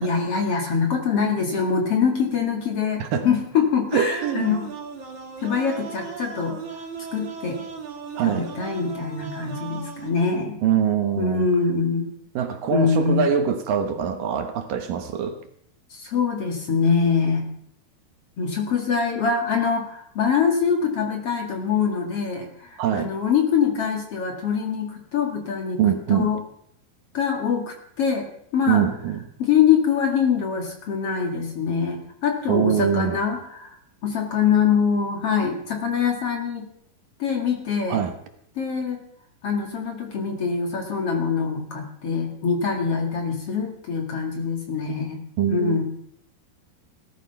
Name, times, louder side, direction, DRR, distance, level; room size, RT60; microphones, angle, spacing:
voice 1, 0.0-4.7 5.4-6.8 7.1-7.6 8.2-10.6 11.2-12.2 12.7-13.3 15.9-17.5 18.4-25.8 26.1-26.4 27.1-28.3 28.5-28.9 29.4-33.8 34.0-36.7 37.2-38.0 38.6-39.0 39.4-45.2 45.5-45.8, left 6 dB, 45° left, 3 dB, 2.6 m, -24 dB
voice 2, 3.9-4.5 8.2-8.5 10.6-11.5 12.3-15.4 22.8-23.1 25.8-26.3 28.7-29.2 32.5-33.2 37.9-38.1 45.4-45.8, right 8 dB, 70° right, 7 dB, 2.7 m, -23 dB
sound 1, 4.1-10.1, right 6 dB, 50° right, 3.8 m, -37 dB
18.0 x 13.5 x 5.8 m, 0.70 s
omnidirectional pair, 4.4 m